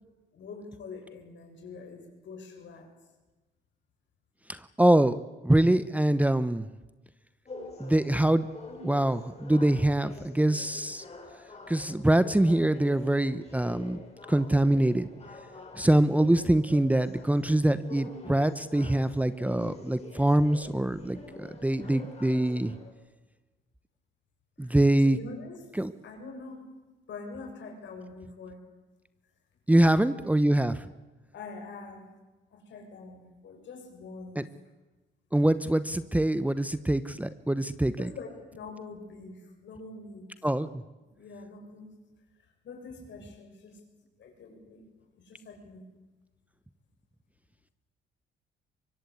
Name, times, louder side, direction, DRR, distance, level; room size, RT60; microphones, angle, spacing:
voice 1, 0.3-2.9 21.8-21.9 24.6-24.8 25.0-25.7 26.0-28.6 29.7-30.0 31.3-32.1 32.5-34.5 38.0-40.3 41.2-42.0 42.6-43.8 44.2-44.8 45.2-45.9, left 3 dB, 65° left, 3 dB, 7.2 m, -44 dB
voice 2, 4.5-6.7 7.8-8.5 8.8-11.0 11.7-14.0 14.3-15.1 15.8-22.8 24.6-25.2 25.7-25.9 29.7-30.9 34.4-34.5 35.3-38.1 40.4-40.8, right 1 dB, 5° right, 13 dB, 0.9 m, -24 dB
sound 1, 7.5-22.9, left 3 dB, 30° left, 6.1 m, -46 dB
24.0 x 22.0 x 8.5 m, 1.2 s
cardioid pair, 90°, 20 cm